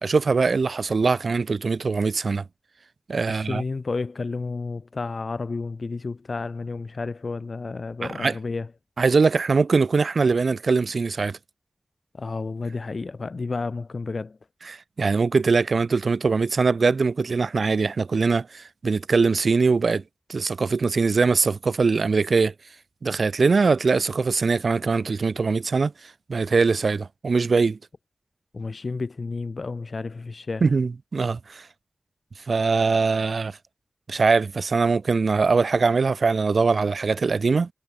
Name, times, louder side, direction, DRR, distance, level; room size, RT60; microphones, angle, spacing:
voice 1, 0.0-2.4 3.1-3.6 8.2-8.3 9.0-11.4 14.7-20.0 20.3-22.5 23.0-25.9 26.3-27.8 30.6-31.7 32.5-33.6 34.1-37.7, right 4 dB, 90° right, 3.3 m, -22 dB
voice 2, 3.2-8.7 12.1-14.4 28.5-30.7, left 3 dB, 70° left, 6.4 m, -31 dB
wide cardioid pair, 75°, 0 cm